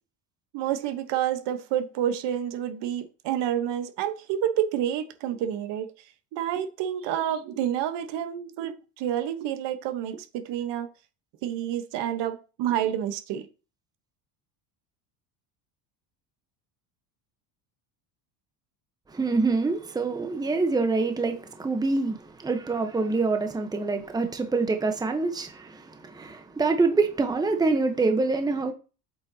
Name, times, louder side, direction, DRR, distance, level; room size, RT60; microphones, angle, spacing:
voice 1, 0.5-5.9 6.3-10.9 11.4-13.5, right 10 dB, 65° right, 1.1 m, -29 dB
voice 2, 19.1-28.7, right 3 dB, 10° right, 0.9 m, -26 dB
7.9 x 5.4 x 2.8 m
supercardioid pair, 115°, 46 cm